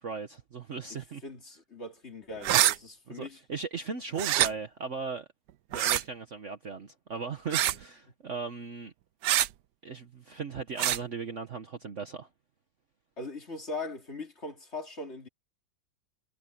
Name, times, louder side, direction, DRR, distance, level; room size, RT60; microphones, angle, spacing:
voice 1, 0.0-1.2 3.1-5.3 5.7-8.9 9.8-12.3, right 5 dB, 45° right, 1.2 m, -37 dB
voice 2, 1.2-3.4 13.2-15.3, left 2 dB, 35° left, 2.9 m, -40 dB
sound 1, 2.4-2.8 4.2-4.5 5.7-6.0 7.5-7.8 9.2-9.5 10.8-11.0, right 13 dB, 70° right, 1.2 m, -24 dB
omnidirectional pair, 2.0 m